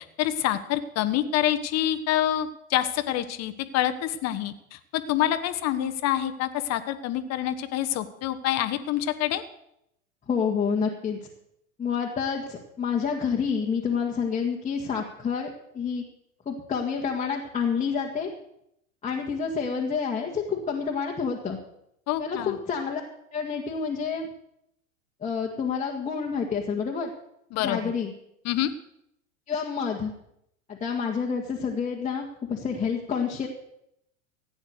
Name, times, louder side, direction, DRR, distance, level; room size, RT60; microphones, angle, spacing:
voice 1, 0.0-9.4 22.1-22.6 27.5-27.9 28.4-28.7, left 12 dB, 40° left, 10 dB, 1.2 m, -27 dB
voice 2, 10.3-11.2 11.8-16.0 16.5-18.3 19.0-21.6 22.2-23.0 23.3-24.3 25.2-27.1 27.6-28.1 29.5-30.1 30.7-33.5, left 6 dB, 20° left, -3 dB, 1.8 m, -28 dB
15.0 x 9.0 x 6.6 m, 0.77 s
hypercardioid pair, 95°, 40 cm